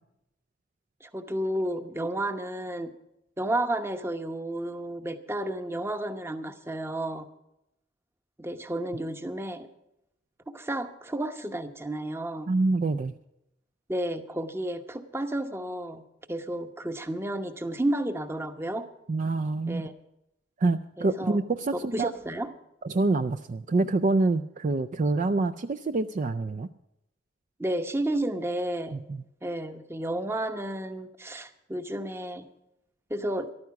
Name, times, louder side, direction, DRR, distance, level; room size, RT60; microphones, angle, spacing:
voice 1, 1.0-2.9 3.4-7.3 8.4-9.7 10.5-12.5 13.9-16.0 16.3-18.9 19.7-19.9 21.0-21.4 21.7-22.5 27.6-28.9 29.4-32.4 33.1-33.5, right 1 dB, 15° right, 8 dB, 0.9 m, -32 dB
voice 2, 12.5-13.1 19.1-19.9 20.6-22.1 22.8-26.7 29.1-29.2, right 3 dB, 45° right, 10 dB, 0.4 m, -26 dB
14.0 x 12.0 x 5.8 m, 0.86 s
head